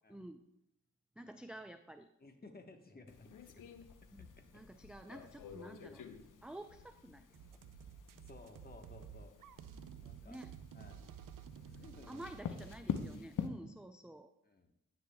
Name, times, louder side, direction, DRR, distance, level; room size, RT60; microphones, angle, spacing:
voice 1, 0.1-0.4 1.2-2.1 4.1-6.0 6.4-7.4 10.2-10.5 12.1-14.3, right 1 dB, 5° right, 7 dB, 0.3 m, -50 dB
voice 2, 2.2-3.6 8.2-9.3 10.0-10.4 10.7-11.0 11.5-12.3 14.4-14.7, left 2 dB, 30° left, 4 dB, 1.1 m, -56 dB
sound 1, 3.1-13.5, left 7 dB, 70° left, 0.7 m, -47 dB
sound 2, 7.3-13.2, right 8 dB, 80° right, 0.5 m, -53 dB
10.0 x 9.1 x 2.2 m, 0.83 s
cardioid pair, 70°, 32 cm